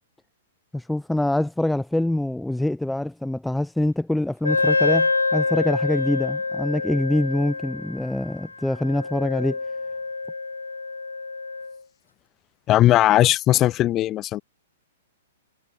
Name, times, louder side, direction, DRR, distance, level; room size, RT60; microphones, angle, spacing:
voice 1, 0.7-9.6, left 1 dB, 5° left, 1.1 m, -25 dB
Wind instrument woodwind instrument, 4.4-11.8, left 3 dB, 85° left, 0.5 m, -26 dB
voice 2, 12.7-14.4, left 14 dB, 30° left, 2.5 m, -18 dB
figure-of-eight pair, 110°, 0 cm